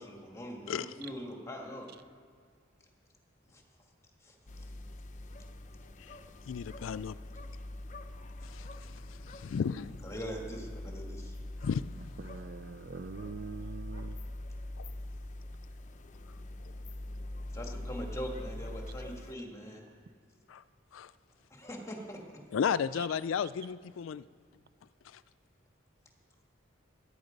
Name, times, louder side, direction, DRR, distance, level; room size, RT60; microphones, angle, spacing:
voice 1, 0.0-1.9 3.5-3.6 4.2-4.3 9.4-9.7 10.0-11.4 17.5-19.8 21.5-22.2, equal, 15° left, 1 dB, 2.0 m, -42 dB
sound 1, 4.5-19.3, left 1 dB, 40° left, 0.6 m, -43 dB
voice 2, 6.5-7.1 8.5-8.7 9.3-9.9 11.6-11.9 14.8-14.9 20.5-20.6 20.9-21.1 22.5-24.2, left 7 dB, 85° left, 16 dB, 0.4 m, -33 dB
voice 3, 12.2-14.2 23.0-23.1, right 5 dB, 50° right, 13 dB, 0.5 m, -43 dB
17.5 x 11.5 x 5.3 m, 2.1 s
head